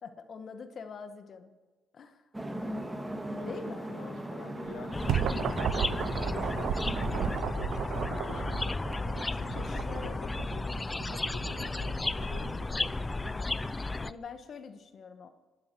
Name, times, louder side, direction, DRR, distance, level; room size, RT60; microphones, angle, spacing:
voice 1, 0.0-1.5 1.9-2.2 3.4-3.9 9.4-10.5 13.2-13.5 14.0-15.3, left 5 dB, 55° left, 9 dB, 1.3 m, -44 dB
sound 1, 2.3-7.4, right 1 dB, 10° right, 1.8 m, -37 dB
voice 2, 3.3-8.8 9.3-10.8 11.3-12.7, left 8 dB, 70° left, 13 dB, 1.0 m, -47 dB
sound 2, 4.7-14.1, right 10 dB, 75° right, 0.5 m, -36 dB
sound 3, 4.9-14.1, left 2 dB, 20° left, 0.4 m, -34 dB
25.5 x 12.5 x 4.6 m, 1.3 s
cardioid pair, 90°, 0 cm